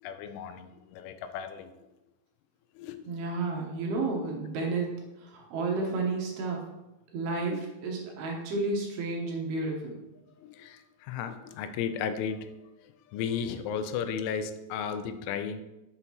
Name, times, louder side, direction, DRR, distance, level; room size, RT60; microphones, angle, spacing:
voice 1, 0.0-1.7 2.7-3.1 4.0-4.1 7.5-7.6 10.4-12.5 12.8-15.6, left 7 dB, 85° left, 9 dB, 3.1 m, -35 dB
voice 2, 3.1-4.9 5.2-6.6 7.1-10.0, right 3 dB, 70° right, 0 dB, 2.8 m, -31 dB
7.9 x 7.8 x 2.9 m, 0.98 s
omnidirectional pair, 5.4 m